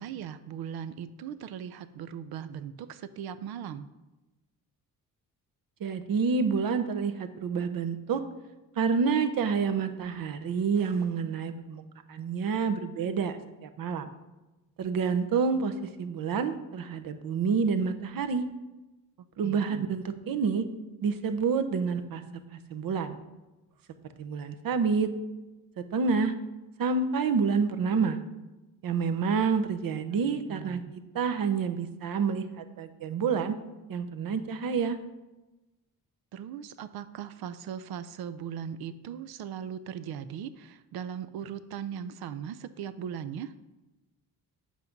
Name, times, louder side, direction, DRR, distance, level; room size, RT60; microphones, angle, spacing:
voice 1, 0.0-3.9 19.4-19.8 30.5-31.0 36.3-43.5, right 8 dB, 85° right, 13 dB, 0.6 m, -39 dB
voice 2, 5.8-8.2 8.8-11.8 12.1-13.4 13.6-14.1 14.8-15.7 16.0-18.4 19.4-20.7 21.0-22.2 22.5-23.2 24.2-25.1 25.9-26.3 26.8-28.2 28.8-33.5 33.9-35.0, right 5 dB, 65° right, 9 dB, 0.9 m, -28 dB
8.3 x 6.0 x 5.2 m, 1.1 s
cardioid pair, 105°, 36 cm